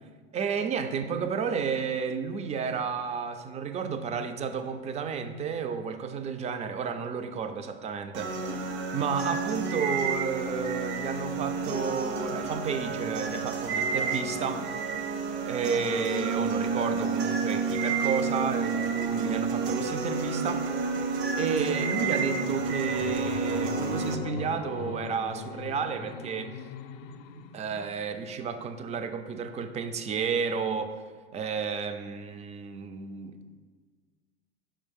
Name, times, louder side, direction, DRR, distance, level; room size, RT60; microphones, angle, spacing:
voice 1, 0.3-8.5 8.9-14.7 15.4-20.7 21.4-26.5 27.5-31.0 31.3-33.4, right 6 dB, 20° right, 8 dB, 0.4 m, -32 dB
sound 1, 8.1-24.2, right 4 dB, 60° right, 0.8 m, -30 dB
sound 2, 21.3-28.7, left 8 dB, 55° left, 0.5 m, -41 dB
5.2 x 3.7 x 5.2 m, 1.5 s
hypercardioid pair, 80°, 32 cm